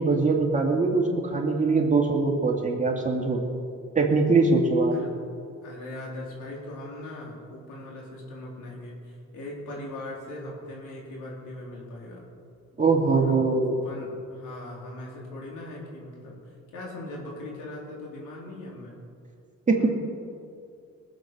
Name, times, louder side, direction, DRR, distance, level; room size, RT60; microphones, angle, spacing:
voice 1, 0.0-3.4 3.9-4.9 12.8-13.8 19.7-19.9, right 3 dB, 25° right, 0 dB, 2.4 m, -22 dB
voice 2, 5.6-12.2 12.9-16.4 16.7-19.0 19.7-19.9, left 1 dB, 90° left, -3 dB, 3.8 m, -39 dB
20.0 x 8.1 x 6.2 m, 2.3 s
cardioid pair, 90°, 30 cm